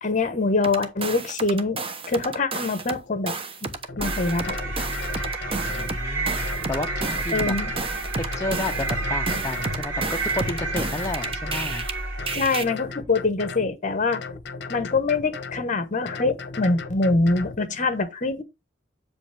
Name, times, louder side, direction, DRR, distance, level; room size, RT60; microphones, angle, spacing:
voice 1, 0.0-3.4 3.6-4.6 7.3-7.7 12.3-14.2 14.7-18.4, left 3 dB, 40° left, 1.1 m, -24 dB
sound 1, 0.6-3.0 3.3-11.9 12.3-12.6, right 3 dB, 30° right, 0.9 m, -31 dB
sound 2, 3.9-4.0 4.4-6.0 6.4-7.9 8.3-9.8 10.2-11.8 12.2-13.7 14.1-15.6 16.1-17.6, left 4 dB, 65° left, 0.9 m, -36 dB
sound 3, 4.0-12.6, right 2 dB, 75° right, 2.7 m, -30 dB
voice 2, 5.5-7.5 8.2-11.9, left 2 dB, 15° left, 0.6 m, -32 dB
7.6 x 5.1 x 3.4 m
head